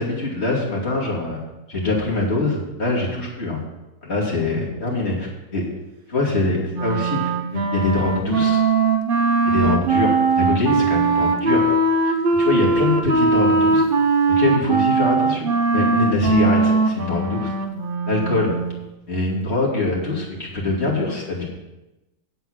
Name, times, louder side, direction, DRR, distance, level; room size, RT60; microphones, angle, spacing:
voice 1, 0.0-1.4 1.7-3.6 4.0-5.6 6.1-8.6 9.4-11.7 12.0-13.8 14.4-17.5 18.1-18.5 19.1-21.4, left 3 dB, 30° left, -4 dB, 2.9 m, -23 dB
Wind instrument woodwind instrument, 6.7-18.8, right 4 dB, 50° right, 0.6 m, -20 dB
8.1 x 7.7 x 8.7 m, 1.0 s
omnidirectional pair, 2.1 m